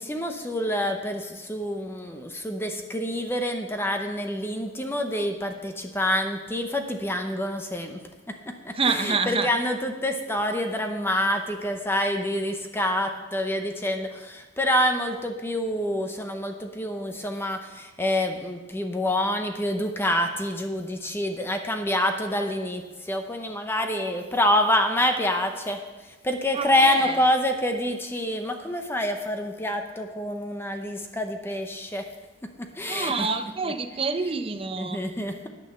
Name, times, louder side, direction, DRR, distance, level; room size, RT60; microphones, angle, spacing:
voice 1, 0.0-8.0 8.3-32.1 32.6-33.3 33.6-33.7 34.8-35.5, left 1 dB, 10° left, 5 dB, 0.7 m, -27 dB
voice 2, 8.8-9.5 26.5-27.2 32.9-35.0, right 4 dB, 30° right, 9 dB, 0.7 m, -27 dB
9.7 x 8.5 x 6.7 m, 1.2 s
head